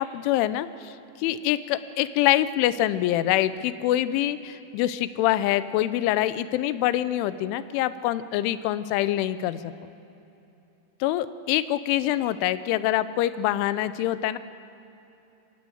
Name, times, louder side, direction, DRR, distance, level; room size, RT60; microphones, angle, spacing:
voice 1, 0.0-9.7 11.0-14.4, left 13 dB, 80° left, 14 dB, 3.1 m, -25 dB
26.0 x 19.0 x 7.9 m, 2.8 s
omnidirectional pair, 5.6 m